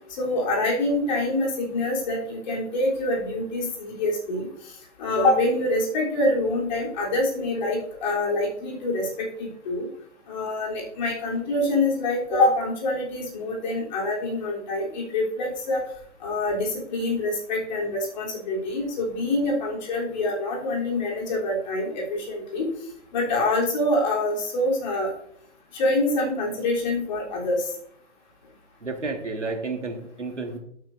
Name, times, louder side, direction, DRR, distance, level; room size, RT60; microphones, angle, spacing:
voice 1, 0.1-9.9 10.3-15.8 16.2-22.7 23.1-25.1 25.7-27.7, left 2 dB, 40° left, -3 dB, 3.5 m, -25 dB
voice 2, 28.8-30.6, right 3 dB, 80° right, 4 dB, 1.9 m, -31 dB
12.0 x 8.5 x 2.6 m, 0.69 s
figure-of-eight pair, 130°, 35 cm